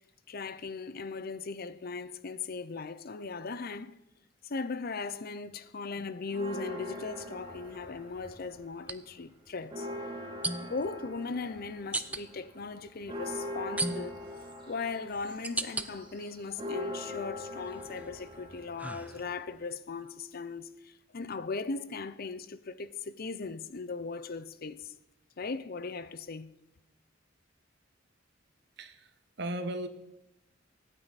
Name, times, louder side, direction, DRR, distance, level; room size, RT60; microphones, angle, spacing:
voice 1, 0.3-4.0 4.4-9.9 10.6-14.2 14.7-24.9 25.4-26.5, left 4 dB, 50° left, 0.6 m, -38 dB
sound 1, 6.0-6.1 8.8-9.0 10.4-10.9 11.9-12.2 13.8-14.3 14.9-15.9 16.4-17.1 17.6-19.6, right 2 dB, 10° right, 0.5 m, -36 dB
sound 2, 6.3-8.7 9.0-19.5, left 1 dB, 25° right, 2.5 m, -42 dB
voice 2, 28.8-29.9, right 1 dB, 60° right, 1.2 m, -37 dB
25.0 x 9.1 x 4.1 m
head